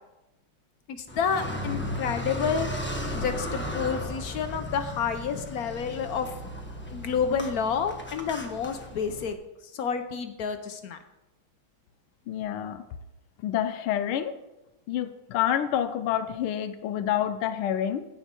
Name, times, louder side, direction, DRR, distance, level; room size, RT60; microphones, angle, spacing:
voice 1, 0.9-2.7 3.1-6.3 6.9-9.4 9.7-11.0, left 6 dB, 65° left, 8 dB, 0.9 m, -29 dB
Car, 1.1-9.3, left 1 dB, 10° left, 0.6 m, -35 dB
voice 2, 12.3-12.8 13.4-14.3 14.9-18.0, left 10 dB, 90° left, 10 dB, 1.6 m, -28 dB
16.0 x 5.7 x 4.4 m, 0.94 s
omnidirectional pair, 2.3 m